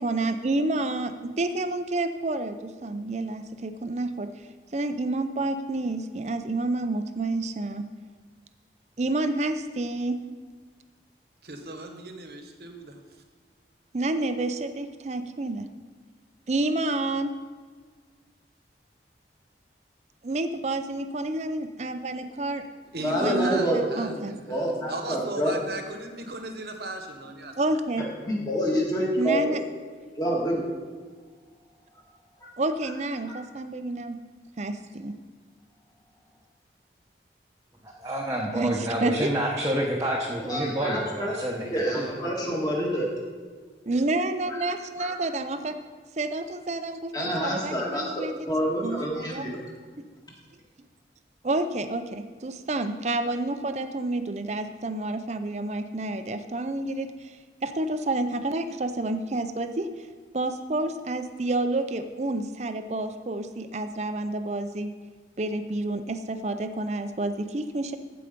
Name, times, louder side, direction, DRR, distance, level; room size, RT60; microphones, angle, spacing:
voice 1, 0.0-4.3 4.7-7.9 9.0-10.2 13.9-15.7 16.5-17.3 20.2-22.6 23.2-24.3 27.6-28.0 29.2-29.6 32.6-34.2 34.6-35.1 38.5-39.3 43.8-45.8 46.2-48.3 48.8-49.5 51.4-60.1 60.3-64.9 65.4-68.0, right 2 dB, 40° right, 9 dB, 0.5 m, -29 dB
voice 2, 11.4-13.0 22.9-27.5, right 1 dB, 60° right, 4 dB, 1.2 m, -36 dB
voice 3, 23.0-24.2 24.5-25.6 28.0-29.6 30.2-30.7 32.4-32.5 33.3-33.4 40.5-41.3 41.7-43.1 45.0-45.1 47.1-49.5, equal, 20° left, -2 dB, 1.8 m, -27 dB
voice 4, 37.8-42.6, right 1 dB, 15° right, -3 dB, 0.9 m, -29 dB
14.5 x 4.9 x 5.2 m, 1.5 s
head